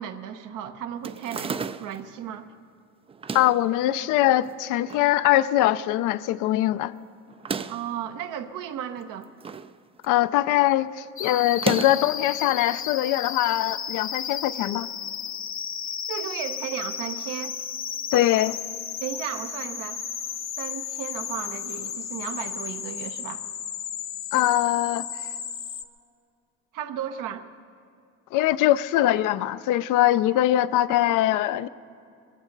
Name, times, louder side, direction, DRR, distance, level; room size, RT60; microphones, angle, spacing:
voice 1, 0.0-2.5 7.7-9.3 16.1-17.5 19.0-20.0 20.6-23.4 26.7-27.5, right 9 dB, 75° right, 8 dB, 1.0 m, -34 dB
sound 1, 1.0-2.1 3.1-3.7 4.4-5.1 5.5-5.6 5.7-5.8 7.3-7.9 9.0-9.7 10.0-10.4 11.5-12.2, right 5 dB, 20° right, 0.4 m, -33 dB
voice 2, 3.3-6.9 10.0-14.9 18.1-18.6 24.3-25.1 28.3-31.7, left 14 dB, 75° left, 14 dB, 0.6 m, -22 dB
sound 2, 11.2-25.8, left 8 dB, 40° left, 0.9 m, -34 dB
22.0 x 15.5 x 4.0 m, 2.5 s
cardioid pair, 100°, 31 cm